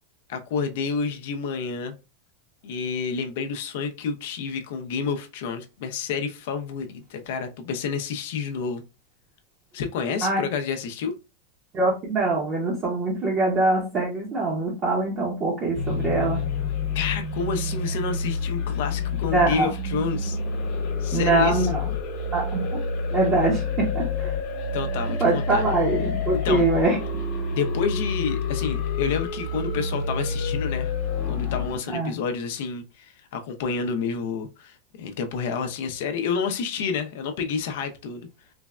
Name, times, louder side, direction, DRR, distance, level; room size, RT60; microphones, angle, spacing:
voice 1, 0.3-1.9 2.6-8.8 9.7-11.1 16.9-20.4 21.0-21.7 24.7-25.6 26.3-26.7 27.5-30.9 31.3-38.3, left 5 dB, 65° left, 0.4 m, -29 dB
voice 2, 11.7-16.4 19.3-19.7 21.1-21.9 22.3-22.8 23.1-24.3 25.2-27.0 31.9-32.1, right 2 dB, 30° right, 0.7 m, -23 dB
sound 1, 15.7-31.8, left 4 dB, 50° left, 1.0 m, -28 dB
3.2 x 2.1 x 2.3 m
supercardioid pair, 150°, 0 cm